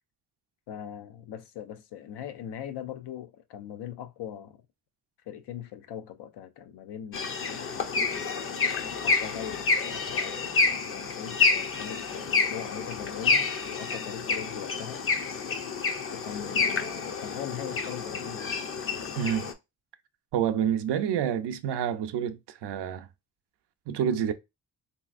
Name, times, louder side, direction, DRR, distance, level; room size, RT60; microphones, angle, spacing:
voice 1, 0.7-4.6 5.3-7.8 8.6-10.5 10.9-15.1 16.1-18.5, left 10 dB, 85° left, 0.6 m, -41 dB
sound 1, 7.1-19.5, left 4 dB, 35° left, 0.5 m, -29 dB
voice 2, 19.2-19.5 20.3-23.1 23.9-24.3, right 9 dB, 85° right, 0.5 m, -28 dB
3.3 x 2.8 x 2.4 m
cardioid pair, 100°, 39 cm